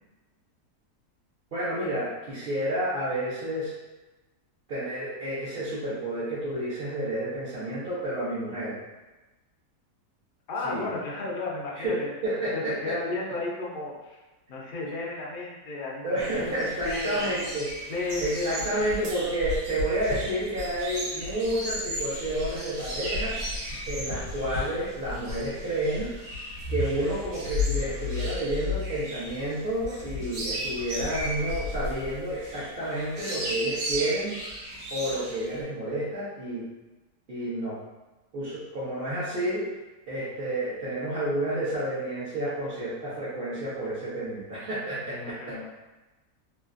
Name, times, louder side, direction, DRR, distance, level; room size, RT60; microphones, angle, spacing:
voice 1, 1.5-3.7 4.7-8.8 10.6-10.9 11.7-13.0 13.3-13.4 14.6-14.7 16.0-17.7 18.2-23.4 23.9-26.1 26.7-34.4 34.9-36.7 37.3-37.8 38.3-39.7 40.1-45.6, right 1 dB, 50° right, -11 dB, 0.7 m, -30 dB
voice 2, 10.5-12.1 12.5-14.2 14.5-16.5 16.8-17.4 17.9-18.9 45.1-45.7, left 2 dB, 65° left, -3 dB, 0.5 m, -33 dB
sound 1, 16.2-35.6, left 1 dB, 75° right, 1.4 m, -34 dB
3.1 x 2.5 x 2.4 m, 1.1 s
omnidirectional pair, 1.7 m